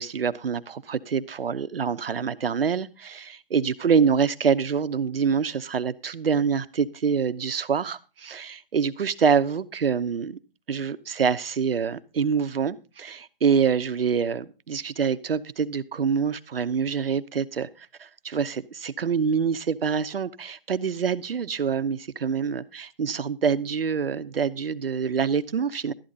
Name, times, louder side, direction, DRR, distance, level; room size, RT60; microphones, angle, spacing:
voice 1, 0.0-10.4 10.7-25.9, right 6 dB, 75° right, 0.9 m, -26 dB
12.5 x 10.0 x 3.9 m
hypercardioid pair, 150°, 29 cm